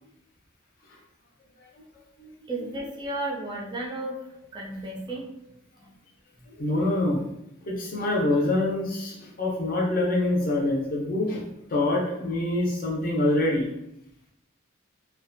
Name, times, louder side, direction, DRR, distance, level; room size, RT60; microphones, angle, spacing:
voice 1, 2.5-4.2 4.5-5.3 5.8-5.9, right 2 dB, 20° right, -3 dB, 0.3 m, -33 dB
voice 2, 6.5-7.2 7.6-13.7, left 2 dB, 45° left, -2 dB, 0.6 m, -25 dB
2.5 x 2.2 x 2.5 m, 0.81 s
head